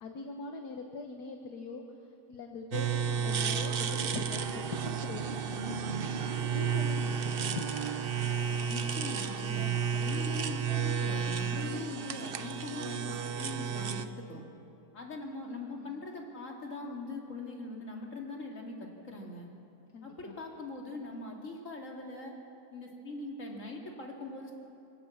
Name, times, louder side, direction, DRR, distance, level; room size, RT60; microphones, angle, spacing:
voice 1, 0.0-1.8 2.3-4.6 5.0-5.7 6.5-7.6 15.7-16.0 19.9-20.4, left 4 dB, 70° left, 3 dB, 1.7 m, -42 dB
sound 1, 2.7-14.1, right 7 dB, 50° right, 0.7 m, -32 dB
Bowed string instrument, 4.3-9.3, right 9 dB, 65° right, 1.2 m, -45 dB
voice 2, 8.6-14.4 14.9-19.5 20.0-22.3 22.7-24.5, left 2 dB, 45° left, 0 dB, 2.9 m, -41 dB
24.5 x 17.5 x 7.3 m, 2.8 s
omnidirectional pair, 1.8 m